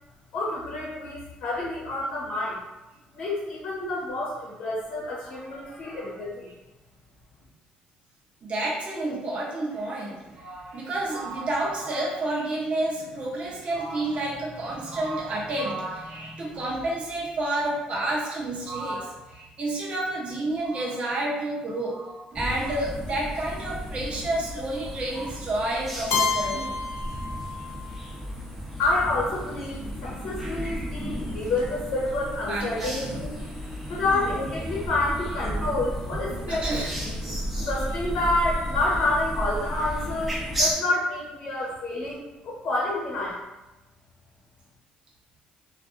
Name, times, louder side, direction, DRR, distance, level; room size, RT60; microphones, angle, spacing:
voice 1, 0.3-2.6 3.1-6.5 28.8-33.3 33.9-36.6 37.6-43.4, left 2 dB, 65° left, -6 dB, 0.9 m, -28 dB
voice 2, 5.3-6.1 8.4-26.7 32.5-33.2 34.0-34.3 36.3-37.5, right 2 dB, 40° right, -4 dB, 0.7 m, -30 dB
sound 1, 22.3-40.7, equal, 5° right, 0.7 m, -33 dB
Keyboard (musical), 26.1-28.0, left 4 dB, 90° left, 0.4 m, -29 dB
2.5 x 2.4 x 2.5 m, 1.0 s
cardioid pair, 100°, 3 cm